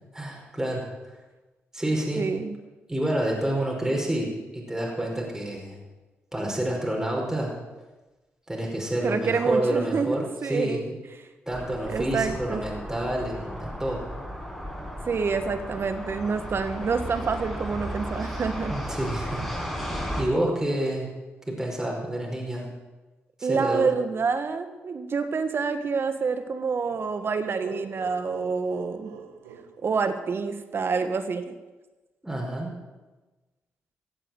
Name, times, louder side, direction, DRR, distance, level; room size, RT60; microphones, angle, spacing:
voice 1, 0.1-0.9 1.7-2.3 2.9-4.3 4.5-5.8 6.3-7.5 8.5-10.9 11.5-14.1 18.7-19.4 20.2-21.1 21.5-22.7 23.4-23.9 32.2-32.7, right 1 dB, 10° right, -1 dB, 5.2 m, -28 dB
voice 2, 2.2-2.5 9.0-10.9 11.9-12.6 15.1-18.7 23.4-29.1 29.8-31.5, right 5 dB, 50° right, 9 dB, 1.6 m, -27 dB
sound 1, 11.5-20.2, equal, 5° left, 5.5 m, -35 dB
sound 2, 26.8-30.5, right 7 dB, 90° right, 1.0 m, -45 dB
16.0 x 7.8 x 7.8 m, 1.2 s
supercardioid pair, 50°, 5 cm